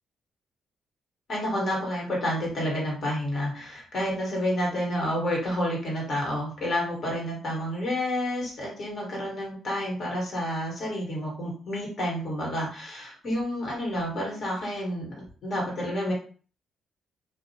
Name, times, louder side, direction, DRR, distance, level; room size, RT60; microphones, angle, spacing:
voice 1, 1.3-15.1 15.4-16.1, equal, 55° left, -2 dB, 1.3 m, -29 dB
2.5 x 2.1 x 2.6 m, 0.41 s
cardioid pair, 90°, 0 cm